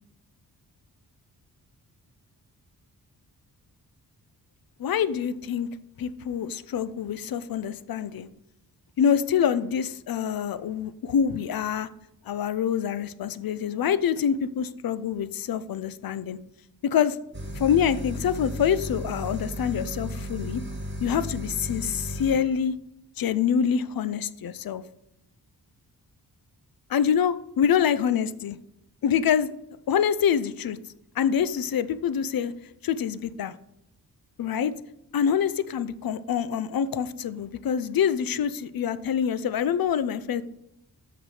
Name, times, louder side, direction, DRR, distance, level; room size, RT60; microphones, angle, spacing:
voice 1, 4.8-5.7 6.0-8.3 9.0-11.9 12.3-16.4 16.8-17.2 17.6-20.6 21.0-22.7 23.2-24.8 26.9-28.6 29.0-29.5 29.9-30.8 31.2-32.5 32.8-33.5 34.4-34.7 35.1-40.4, left 8 dB, 65° left, 14 dB, 0.6 m, -26 dB
sound 1, 17.3-22.4, equal, 30° right, 1.8 m, -35 dB
8.0 x 6.0 x 4.8 m, 0.83 s
wide cardioid pair, 120°, 38 cm